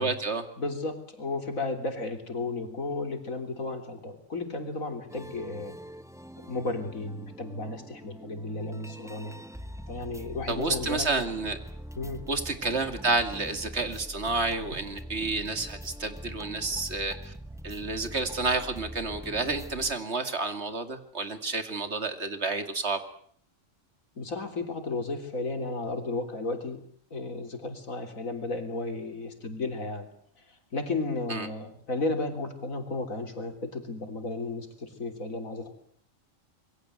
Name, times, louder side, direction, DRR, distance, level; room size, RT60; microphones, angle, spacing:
voice 1, 0.0-0.5 10.5-11.6 12.3-17.3 17.6-23.0 31.3-31.5, right 3 dB, 55° right, 9 dB, 2.7 m, -30 dB
voice 2, 0.6-5.8 6.4-9.3 9.9-11.1 12.0-12.2 24.2-26.8 27.1-30.1 30.5-35.8, left 3 dB, 90° left, 6 dB, 3.9 m, -34 dB
sound 1, 5.1-19.9, equal, ahead, 1.2 m, -43 dB
26.5 x 22.5 x 8.0 m, 0.62 s
omnidirectional pair, 1.4 m